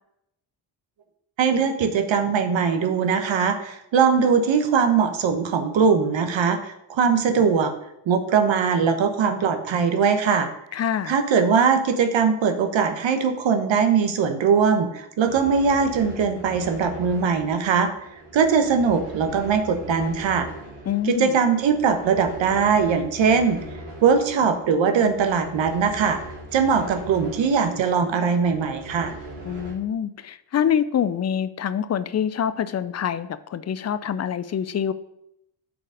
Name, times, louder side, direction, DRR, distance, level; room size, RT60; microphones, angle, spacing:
voice 1, 1.4-7.7 8.1-10.5 11.1-17.9 18.3-20.5 21.0-23.6 24.0-26.2 26.5-29.1, right 6 dB, 65° right, 7 dB, 1.0 m, -21 dB
voice 2, 10.7-11.1 20.9-21.4 29.4-34.9, left 8 dB, 35° left, 14 dB, 0.4 m, -25 dB
sound 1, 15.2-29.7, right 1 dB, 85° right, 2.6 m, -40 dB
6.0 x 4.0 x 6.2 m, 0.81 s
supercardioid pair, 60°, 49 cm